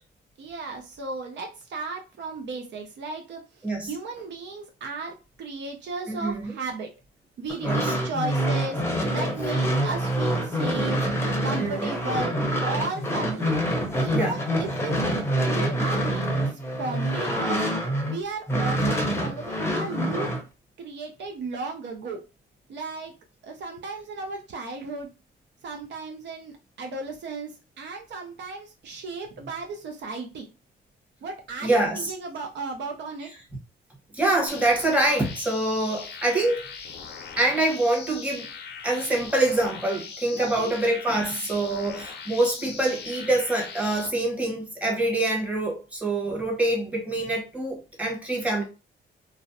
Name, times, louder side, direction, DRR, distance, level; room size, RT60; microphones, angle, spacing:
voice 1, 0.4-3.4 3.9-6.9 7.4-8.8 9.1-11.0 11.4-13.6 14.0-16.3 16.8-17.6 18.1-20.3 20.8-22.2 22.7-23.1 23.4-25.1 25.6-27.5 27.8-30.5 31.2-33.3 40.3-40.8, right 3 dB, 65° right, 0.5 m, -35 dB
voice 2, 6.1-6.6 7.6-7.9 11.6-12.0 14.1-14.3 31.6-32.1 33.2-33.3 34.1-36.7 37.4-38.4 38.8-48.6, right 2 dB, 5° right, 1.0 m, -25 dB
sound 1, 7.5-18.2 18.5-20.4, equal, 10° left, 0.7 m, -26 dB
sound 2, 34.5-44.1, left 6 dB, 60° left, 0.5 m, -40 dB
2.5 x 2.0 x 2.5 m
cardioid pair, 90°, 20 cm